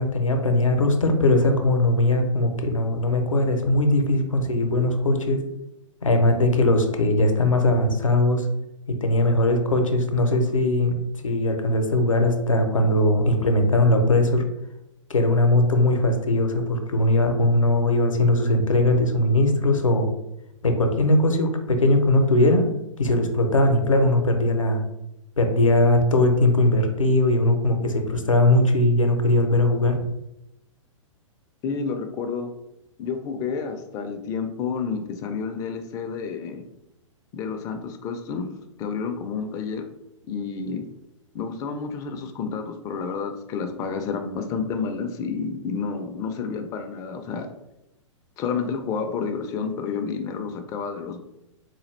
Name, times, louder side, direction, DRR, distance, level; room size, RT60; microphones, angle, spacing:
voice 1, 0.0-5.4 6.0-8.5 8.9-10.9 11.2-14.4 15.1-20.1 20.6-22.7 23.0-24.8 25.4-30.0, left 1 dB, 80° left, 5 dB, 0.6 m, -20 dB
voice 2, 31.6-32.5 33.0-36.6 37.3-38.5 38.8-39.8 40.3-40.8 41.3-47.5 48.4-51.2, left 5 dB, 20° left, 6 dB, 0.4 m, -30 dB
4.0 x 2.3 x 3.2 m, 0.86 s
figure-of-eight pair, 110°, 17 cm